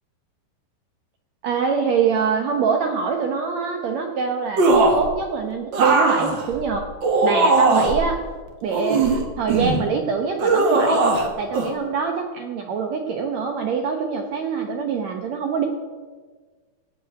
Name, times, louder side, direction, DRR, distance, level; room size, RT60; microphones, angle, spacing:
voice 1, 1.4-4.6 4.9-6.8 7.2-8.2 8.6-11.1 11.4-15.7, right 5 dB, 75° right, 3 dB, 1.6 m, -24 dB
sound 1, 4.6-5.1 5.7-8.0 8.7-9.8 10.4-11.3 11.5-11.7, right 3 dB, 50° right, 1.4 m, -19 dB
16.5 x 5.6 x 8.9 m, 1.4 s
omnidirectional pair, 4.3 m